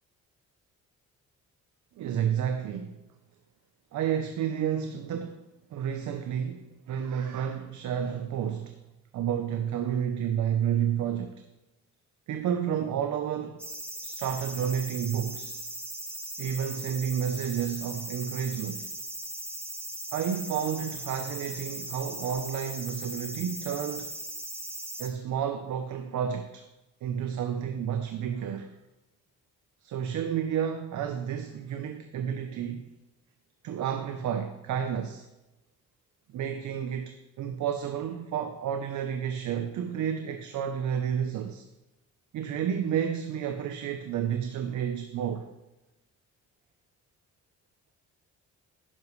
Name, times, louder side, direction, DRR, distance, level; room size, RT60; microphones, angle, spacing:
voice 1, 2.0-3.0 3.9-5.4 5.7-8.8 9.1-11.4 12.3-13.6 14.0-15.6 16.4-18.9 20.1-24.1 25.0-26.7 27.0-28.7 29.8-32.9 33.6-35.3 36.3-41.7 42.3-45.5, right 8 dB, 75° right, 0.8 m, -31 dB
sound 1, 13.6-25.1, right 1 dB, 10° right, 1.4 m, -38 dB
11.0 x 10.0 x 3.2 m
cardioid pair, 90°, 30 cm